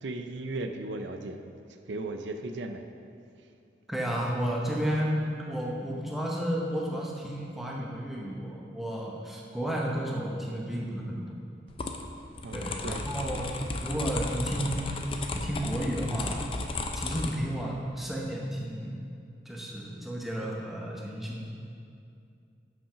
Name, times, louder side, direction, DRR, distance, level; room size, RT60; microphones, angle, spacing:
voice 1, 0.0-1.6 1.9-2.8 12.4-13.0, right 2 dB, 85° right, 6 dB, 0.5 m, -36 dB
voice 2, 3.9-5.2 5.5-11.4 12.5-13.5 13.8-14.8 15.3-16.4 16.9-19.0 19.4-21.4, equal, ahead, -3 dB, 0.9 m, -32 dB
sound 1, 11.7-17.4, left 2 dB, 30° left, 0.5 m, -34 dB
7.1 x 6.0 x 5.7 m, 2.5 s
head